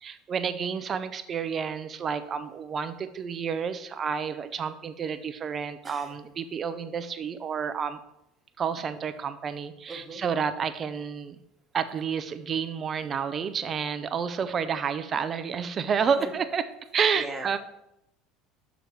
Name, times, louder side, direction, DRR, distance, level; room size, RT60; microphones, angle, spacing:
voice 1, 0.0-8.0 8.6-11.4 11.7-16.6 16.9-17.6, right 6 dB, 35° right, 11 dB, 0.6 m, -30 dB
voice 2, 9.9-10.2 16.2-16.3 17.2-17.6, right 2 dB, 15° right, 3 dB, 1.4 m, -38 dB
6.2 x 4.6 x 5.2 m, 0.84 s
supercardioid pair, 90°, 0 cm